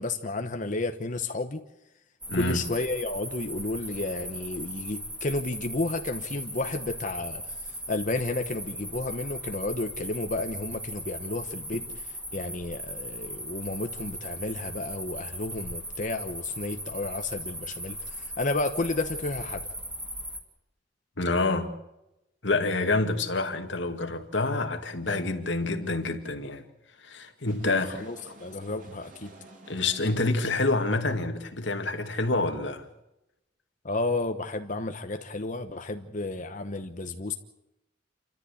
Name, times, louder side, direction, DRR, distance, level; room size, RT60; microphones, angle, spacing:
voice 1, 0.0-1.6 2.3-12.1 12.3-19.6 27.6-27.7 28.0-29.3 33.8-37.3, left 2 dB, 40° left, 1.1 m, -32 dB
sound 1, 2.2-20.4, equal, 5° right, 2.6 m, -38 dB
voice 2, 2.3-2.6 21.2-21.7 22.4-26.6 27.0-28.0 29.7-32.9, left 2 dB, 65° left, 2.3 m, -27 dB
sound 2, 27.5-30.6, right 1 dB, 45° right, 3.7 m, -51 dB
28.5 x 14.0 x 8.5 m
head